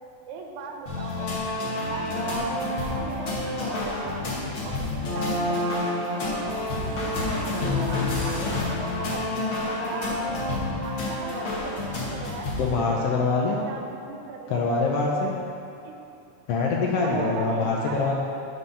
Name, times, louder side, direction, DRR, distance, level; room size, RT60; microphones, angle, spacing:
voice 1, 0.3-1.3 1.6-2.5 2.9-4.3 4.6-7.2 7.4-12.5 13.6-14.6 15.8-16.0 16.9-18.1, right 5 dB, 85° right, 0 dB, 2.1 m, -38 dB
sound 1, 0.9-12.7, left 2 dB, 55° left, 1.7 m, -28 dB
voice 2, 12.6-13.6 14.5-15.3 16.5-18.1, left 3 dB, 85° left, -2 dB, 1.4 m, -24 dB
7.8 x 4.4 x 5.6 m, 2.6 s
omnidirectional pair, 3.4 m